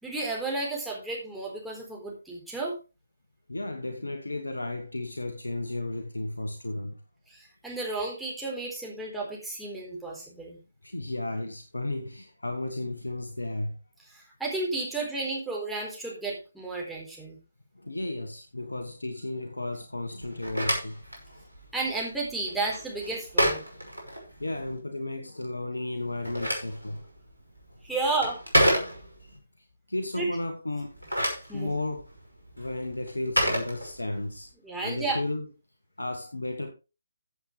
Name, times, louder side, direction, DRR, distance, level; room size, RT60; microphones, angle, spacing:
voice 1, 0.0-2.7 7.3-10.6 14.1-17.4 21.7-23.6 27.8-28.4 30.2-30.3 31.5-31.7 34.6-35.2, right 3 dB, ahead, 4.0 m, -32 dB
voice 2, 3.5-7.0 10.8-13.8 17.7-21.0 21.2-21.5 23.8-24.0 24.4-27.1 28.0-28.2 29.6-31.0 31.5-32.1 32.6-34.5 34.8-35.5 36.0-36.7, left 2 dB, 75° left, 1.5 m, -34 dB
Telephone, 20.2-24.7 26.0-29.4 30.8-34.4, equal, 85° right, 5.7 m, -30 dB
15.5 x 7.8 x 3.3 m
figure-of-eight pair, 145°, 0 cm